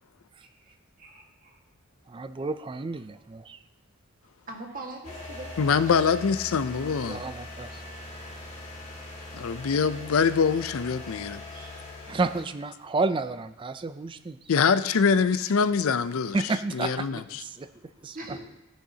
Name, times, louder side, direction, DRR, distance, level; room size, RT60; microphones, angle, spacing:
voice 1, 0.4-0.7 1.0-1.6 4.5-6.1 11.5-11.7 15.5-15.6 18.1-18.4, right 2 dB, 40° right, 1.6 m, -42 dB
voice 2, 2.1-3.6 7.1-7.8 12.1-14.5 16.3-18.4, right 3 dB, 25° right, 0.3 m, -31 dB
sound 1, 5.0-12.5, left 2 dB, 30° left, 2.0 m, -41 dB
voice 3, 5.6-7.2 9.3-11.4 14.5-16.4 16.7-17.2, left 6 dB, 70° left, 0.5 m, -24 dB
13.5 x 10.0 x 2.8 m
head